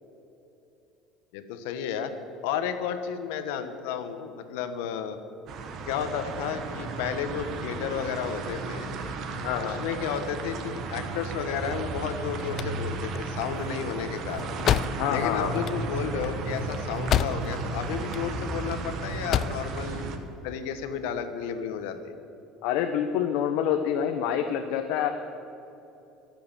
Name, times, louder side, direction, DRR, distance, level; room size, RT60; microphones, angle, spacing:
voice 1, 1.3-2.1 2.4-5.2 5.9-8.9 9.6-14.5 15.1-20.2 20.4-22.0, left 7 dB, 90° left, 9 dB, 1.3 m, -32 dB
sound 1, 5.5-20.2, right 3 dB, 40° right, 1.3 m, -34 dB
voice 2, 9.4-9.8 15.0-15.6 22.6-25.1, left 9 dB, 65° left, 5 dB, 1.0 m, -27 dB
sound 2, 12.1-17.7 18.0-18.7 19.1-19.7, left 10 dB, 35° left, 0.3 m, -29 dB
23.0 x 7.6 x 7.4 m, 2.9 s
cardioid pair, 170°, 0 cm